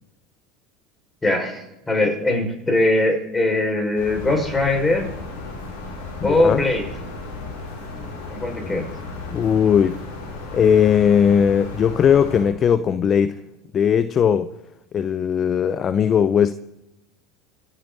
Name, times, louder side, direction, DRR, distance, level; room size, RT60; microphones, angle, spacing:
voice 1, 1.2-5.1 6.2-6.9 8.3-8.9, left 2 dB, 15° left, 5.8 m, -21 dB
sound 1, 4.0-12.4, left 3 dB, 75° left, 6.0 m, -35 dB
voice 2, 6.2-6.6 8.6-8.8 9.3-10.0 10.5-13.4 13.7-14.5 14.9-16.5, left 8 dB, 40° left, 0.7 m, -18 dB
26.5 x 11.0 x 4.1 m
hypercardioid pair, 80°, 0 cm